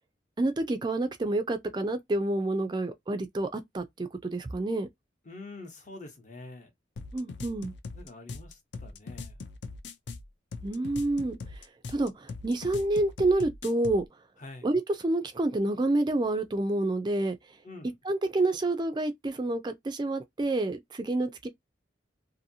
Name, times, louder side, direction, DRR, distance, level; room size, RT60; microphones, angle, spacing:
voice 1, 0.4-4.9 7.1-7.7 10.6-14.0 14.6-17.4 18.0-21.5, right 2 dB, 25° right, 0.4 m, -28 dB
voice 2, 5.2-6.7 7.9-9.4 14.4-14.7 17.6-17.9, left 2 dB, 40° left, 0.9 m, -46 dB
sound 1, 7.0-14.1, left 4 dB, 70° left, 0.5 m, -41 dB
2.7 x 2.6 x 2.6 m
head